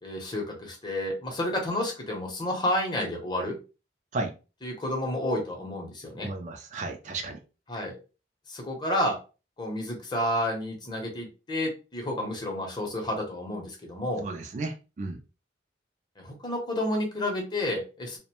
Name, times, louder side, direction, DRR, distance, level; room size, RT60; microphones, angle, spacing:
voice 1, 0.0-3.6 4.6-6.3 7.7-8.0 8.5-9.2 9.6-14.2 16.2-18.2, left 1 dB, 25° left, 1 dB, 0.7 m, -30 dB
voice 2, 6.2-7.4 14.2-15.2, right 2 dB, 40° right, 5 dB, 0.3 m, -34 dB
2.5 x 2.1 x 2.9 m, 0.32 s
head